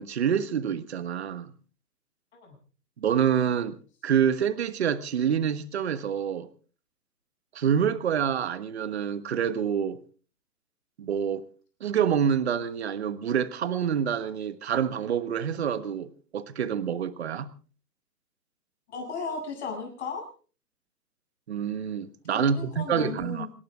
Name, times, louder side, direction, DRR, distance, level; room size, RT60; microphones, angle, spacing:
voice 1, 0.0-1.5 3.0-3.8 4.0-6.5 7.5-10.0 11.0-11.4 11.8-17.5 21.5-23.5, right 8 dB, 40° right, 13 dB, 1.4 m, -27 dB
voice 2, 18.9-20.3 22.3-23.5, left 4 dB, 40° left, 2 dB, 7.9 m, -35 dB
27.5 x 12.0 x 3.7 m, 0.39 s
hypercardioid pair, 160°, 50 cm